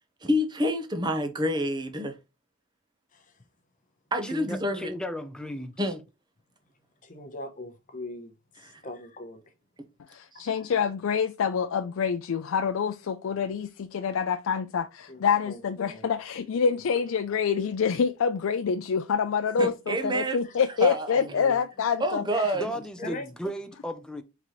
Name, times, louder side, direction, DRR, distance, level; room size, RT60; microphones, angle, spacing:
voice 1, 0.2-2.1 4.1-4.9 5.8-6.0 8.6-8.8 10.3-10.5 19.6-20.4 20.8-21.1 22.0-22.7, equal, 20° right, 0.8 m, -28 dB
voice 2, 4.2-5.9 22.5-24.2, equal, 5° left, 0.4 m, -35 dB
voice 3, 7.0-9.4 15.1-16.1 20.4-20.6 21.1-21.6 23.0-23.3, left 1 dB, 35° left, 0.8 m, -41 dB
voice 4, 10.1-22.5, left 6 dB, 70° left, 0.4 m, -26 dB
4.5 x 3.9 x 3.0 m
head